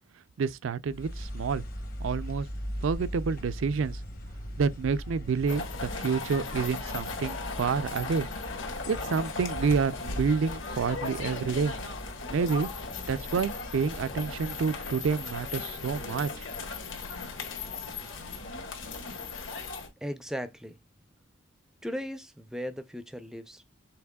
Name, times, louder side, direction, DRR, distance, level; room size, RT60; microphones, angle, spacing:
voice 1, 0.4-1.6 2.0-2.5 2.8-4.0 4.6-8.3 8.9-11.7 12.3-12.7 13.1-16.3, right 5 dB, 65° right, 0.4 m, -28 dB
sound 1, 0.8-19.3, equal, 40° left, 1.0 m, -41 dB
sound 2, 5.5-19.9, left 4 dB, 60° left, 1.3 m, -37 dB
voice 2, 20.0-20.8 21.8-23.6, equal, 5° right, 0.4 m, -37 dB
5.8 x 3.4 x 2.2 m
head